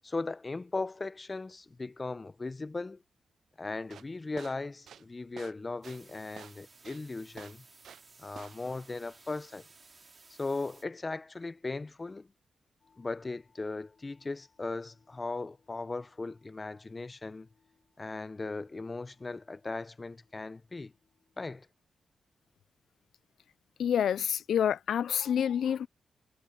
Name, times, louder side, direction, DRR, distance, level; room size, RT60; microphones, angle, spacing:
voice 1, 0.0-3.0 3.6-7.6 8.2-9.6 10.4-12.3 13.0-17.5 18.0-20.9 21.4-21.7, left 3 dB, 35° left, 0.8 m, -38 dB
sound 1, 3.8-8.1 8.4-8.7, right 8 dB, 80° right, 0.5 m, -50 dB
sound 2, 5.8-10.9, right 3 dB, 40° right, 2.9 m, -58 dB
sound 3, 12.8-21.5, left 5 dB, 55° left, 8.0 m, -72 dB
voice 2, 23.8-25.9, left 9 dB, 80° left, 0.3 m, -28 dB
cardioid pair, 60°, 0 cm